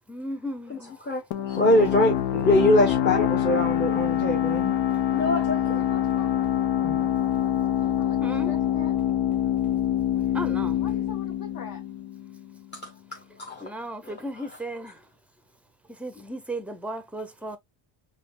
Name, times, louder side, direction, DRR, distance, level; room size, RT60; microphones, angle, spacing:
voice 1, 0.1-0.9 8.2-8.5 10.3-10.8 13.6-15.0 16.0-17.6, right 1 dB, 5° right, 0.6 m, -35 dB
voice 2, 0.7-4.7 5.1-5.8 6.8-7.1 13.4-13.6 14.0-14.5, left 1 dB, 20° left, 1.2 m, -24 dB
sound 1, 1.3-12.7, left 11 dB, 70° left, 0.9 m, -25 dB
voice 3, 5.2-5.5 5.8-6.3 7.8-8.9 10.8-11.8, left 4 dB, 45° left, 1.4 m, -42 dB
5.1 x 2.9 x 2.3 m
cardioid pair, 130°, 47 cm